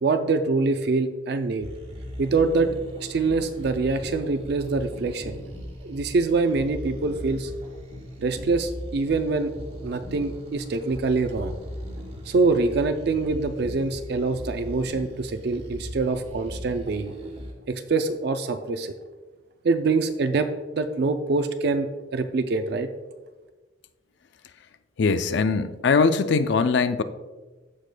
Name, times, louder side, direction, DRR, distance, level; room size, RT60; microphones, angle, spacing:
voice 1, 0.0-1.7 2.2-2.7 3.0-5.4 5.8-7.5 8.2-9.5 9.8-11.5 12.3-17.1 17.7-18.9 19.6-22.9, right 3 dB, 55° right, 8 dB, 0.4 m, -25 dB
sound 1, 1.6-17.5, equal, 35° right, 1.3 m, -38 dB
voice 2, 25.0-27.0, left 4 dB, 60° left, 12 dB, 0.4 m, -21 dB
14.5 x 4.9 x 2.2 m, 1.3 s
head